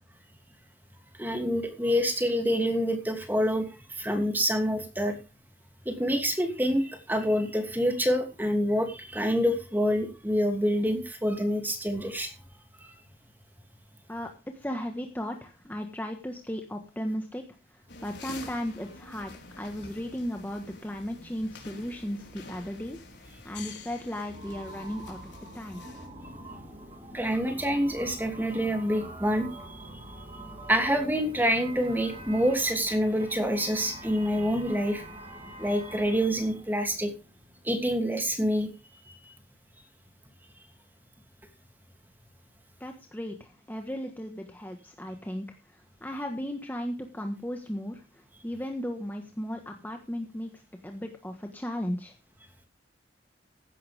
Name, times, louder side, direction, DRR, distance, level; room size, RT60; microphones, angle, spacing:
voice 1, 1.2-5.1 5.8-12.3 27.1-29.8 30.7-35.0 35.6-37.1 37.6-38.7 39.0-39.3, equal, 10° right, 4 dB, 2.8 m, -27 dB
voice 2, 14.1-17.4 17.7-25.8 42.8-52.1, equal, 10° left, 3 dB, 1.5 m, -36 dB
sound 1, 17.9-26.1, left 3 dB, 85° left, 4.4 m, -47 dB
sound 2, 24.3-37.8, right 1 dB, 30° right, 3.2 m, -45 dB
16.0 x 11.5 x 3.6 m, 0.30 s
head